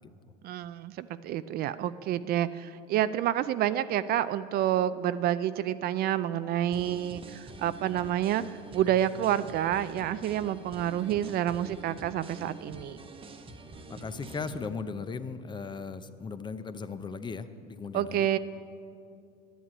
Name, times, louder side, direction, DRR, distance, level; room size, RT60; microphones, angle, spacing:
voice 1, 0.4-8.4 8.7-13.0 17.9-18.4, right 11 dB, 50° right, 14 dB, 0.4 m, -28 dB
sound 1, 6.7-14.7, right 2 dB, 25° right, 1.0 m, -46 dB
voice 2, 13.9-18.3, left 5 dB, 20° left, 11 dB, 0.6 m, -37 dB
10.0 x 9.5 x 8.5 m, 2.5 s
supercardioid pair, 110°, 21 cm